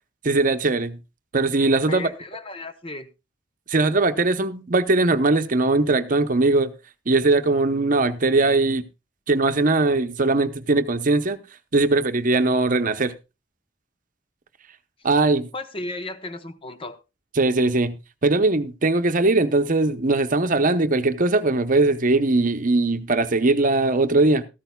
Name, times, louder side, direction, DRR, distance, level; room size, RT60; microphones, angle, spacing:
voice 1, 0.2-1.0 1.3-2.1 3.7-6.7 7.1-8.8 9.3-11.4 11.7-13.1 15.0-15.5 17.4-24.4, right 2 dB, 45° right, 0.8 m, -20 dB
voice 2, 1.9-3.1 15.5-17.0, left 2 dB, 30° left, 0.9 m, -34 dB
14.0 x 13.5 x 2.3 m
head